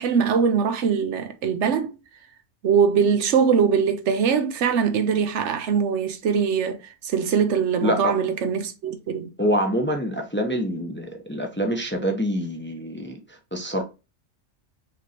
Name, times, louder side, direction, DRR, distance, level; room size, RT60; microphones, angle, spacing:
voice 1, 0.0-2.0 2.6-9.3, right 6 dB, 80° right, 1.0 m, -22 dB
voice 2, 7.8-8.2 9.4-13.8, equal, 10° left, 0.7 m, -26 dB
5.0 x 3.1 x 2.9 m
omnidirectional pair, 1.2 m